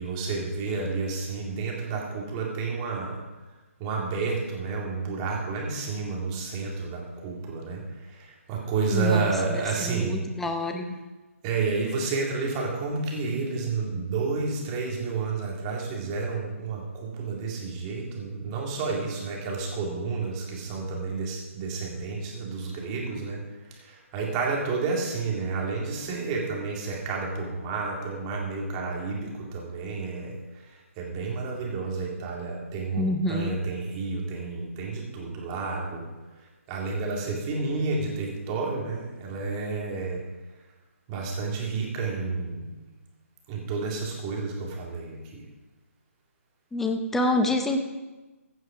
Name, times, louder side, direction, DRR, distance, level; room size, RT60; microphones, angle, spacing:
voice 1, 0.0-3.2 3.8-10.3 11.4-23.4 23.8-36.1 36.7-40.2 41.1-42.9 43.5-45.4, right 4 dB, 20° right, -1 dB, 2.3 m, -30 dB
voice 2, 8.9-11.0 33.0-33.6 46.7-47.8, left 1 dB, 5° left, 4 dB, 0.6 m, -27 dB
15.0 x 6.3 x 4.9 m, 1.1 s
figure-of-eight pair, 150°, 8 cm